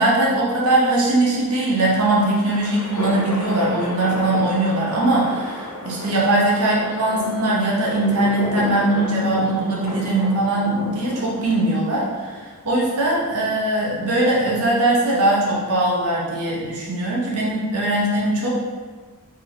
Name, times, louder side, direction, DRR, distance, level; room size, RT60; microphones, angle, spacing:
voice 1, 0.0-18.5, right 1 dB, 85° right, -4 dB, 0.8 m, -20 dB
sound 1, 1.9-12.4, left 1 dB, 70° left, 0.8 m, -32 dB
3.3 x 2.8 x 3.9 m, 1.5 s
head